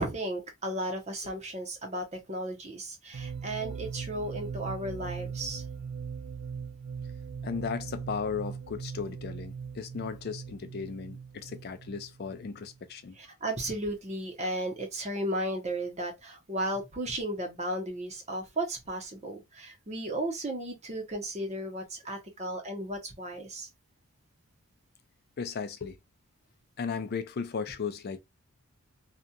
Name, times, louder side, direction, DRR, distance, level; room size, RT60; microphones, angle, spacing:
voice 1, 0.0-5.6 13.2-23.7, right 1 dB, 30° right, 0.8 m, -34 dB
sound 1, 3.1-12.8, right 6 dB, 80° right, 0.4 m, -40 dB
voice 2, 7.4-13.2 25.4-26.0 26.8-28.2, left 5 dB, 45° left, 0.4 m, -36 dB
2.8 x 2.4 x 2.2 m
head